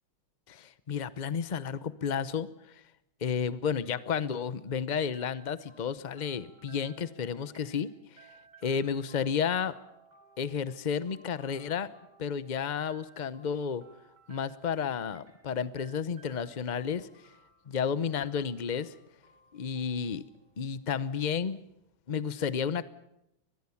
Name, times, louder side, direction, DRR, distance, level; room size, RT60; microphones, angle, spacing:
voice 1, 0.5-2.5 3.2-7.9 8.6-9.7 10.4-11.9 12.2-13.8 14.3-17.1 17.7-18.9 19.5-20.2 20.6-21.6 22.1-22.8, left 7 dB, 85° left, 15 dB, 0.4 m, -32 dB
sound 1, 5.1-20.9, right 4 dB, 35° right, 4.2 m, -60 dB
23.5 x 20.5 x 7.1 m, 0.84 s
omnidirectional pair, 2.2 m